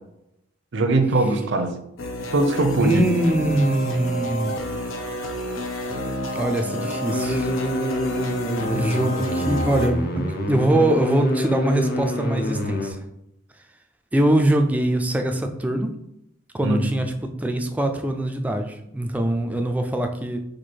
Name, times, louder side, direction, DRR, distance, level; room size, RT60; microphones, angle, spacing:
voice 1, 0.7-1.7 2.3-3.0 16.6-16.9, right 2 dB, 65° right, 0.6 m, -21 dB
sound 1, 2.0-9.9, equal, 85° left, 0.7 m, -30 dB
voice 2, 2.8-4.6 6.4-7.5 8.7-13.0 14.1-15.9 16.5-20.4, right 1 dB, 10° right, 0.4 m, -23 dB
sound 2, 7.1-12.9, equal, 55° left, 0.7 m, -26 dB
4.4 x 2.6 x 4.5 m
head